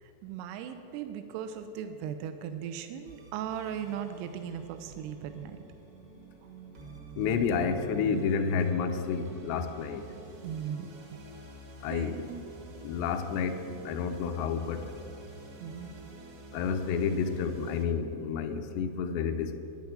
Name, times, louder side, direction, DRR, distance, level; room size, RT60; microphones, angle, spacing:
voice 1, 0.0-5.6 10.4-10.9 11.9-12.4 15.6-15.9, right 8 dB, 85° right, 8 dB, 2.7 m, -38 dB
sound 1, 3.1-17.8, right 2 dB, 55° right, 1.5 m, -49 dB
voice 2, 7.2-10.0 11.8-12.2 12.8-14.8 16.5-19.6, left 6 dB, 85° left, 6 dB, 2.9 m, -30 dB
10.5 x 10.0 x 9.1 m, 3.0 s
omnidirectional pair, 4.9 m